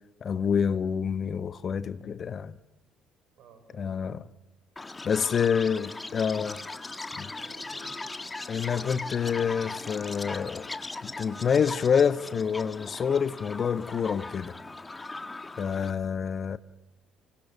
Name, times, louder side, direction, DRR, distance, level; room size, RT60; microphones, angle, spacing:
voice 1, 0.2-2.6 3.8-4.3 5.0-6.6 7.2-7.3 8.5-10.7 11.0-14.6 15.6-16.6, left 7 dB, 45° left, 1.0 m, -27 dB
voice 2, 3.4-3.9 5.3-5.6 6.6-6.8 7.3-8.1 15.6-15.9, right 6 dB, 60° right, 5.8 m, -54 dB
Chirp tweet, 4.8-15.9, left 3 dB, 20° left, 1.8 m, -39 dB
25.5 x 22.5 x 7.4 m
figure-of-eight pair, 55°, 0 cm